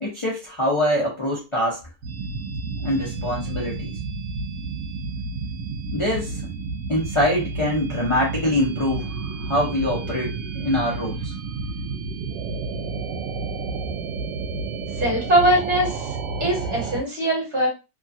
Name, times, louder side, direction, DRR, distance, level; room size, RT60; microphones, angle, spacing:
voice 1, 0.0-1.8 2.8-4.0 5.9-6.4 6.9-11.3, left 1 dB, 40° left, -5 dB, 0.4 m, -24 dB
sound 1, 2.0-17.0, right 4 dB, 80° right, 1.2 m, -31 dB
voice 2, 15.0-17.7, right 1 dB, 40° right, -3 dB, 1.5 m, -22 dB
3.0 x 2.4 x 2.6 m, 0.28 s
omnidirectional pair, 1.9 m